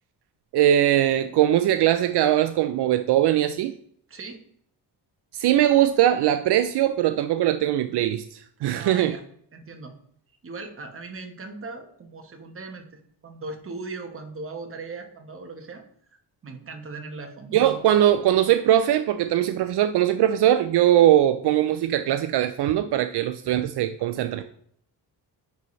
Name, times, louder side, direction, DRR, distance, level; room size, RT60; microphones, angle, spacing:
voice 1, 0.5-3.7 5.3-9.1 17.5-24.4, right 12 dB, 70° right, 9 dB, 0.5 m, -21 dB
voice 2, 4.1-4.4 8.7-9.2 9.5-9.9 10.4-12.9 13.2-15.8 16.4-17.8 24.3-24.4, right 3 dB, 30° right, 5 dB, 1.1 m, -38 dB
10.0 x 4.1 x 3.1 m, 0.64 s
wide cardioid pair, 150°, 41 cm